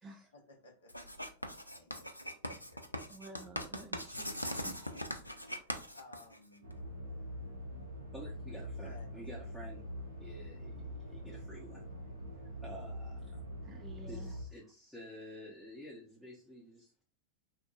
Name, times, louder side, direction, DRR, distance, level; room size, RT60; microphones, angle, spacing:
voice 1, 0.3-1.3 1.8-2.8 3.0-3.1 5.6-6.7 7.1-7.5 8.8-9.1, left 3 dB, 65° left, 0.7 m, -59 dB
Writing, 0.9-6.7, equal, 90° left, 0.4 m, -41 dB
voice 2, 3.1-5.8 13.6-14.3, right 2 dB, 20° right, 0.4 m, -53 dB
sound 1, 6.6-14.4, equal, 85° right, 0.7 m, -44 dB
voice 3, 8.1-9.9 10.2-11.9 12.3-13.4 14.1-17.0, equal, 5° left, 0.7 m, -50 dB
3.0 x 2.1 x 2.4 m
figure-of-eight pair, 90°, 0 cm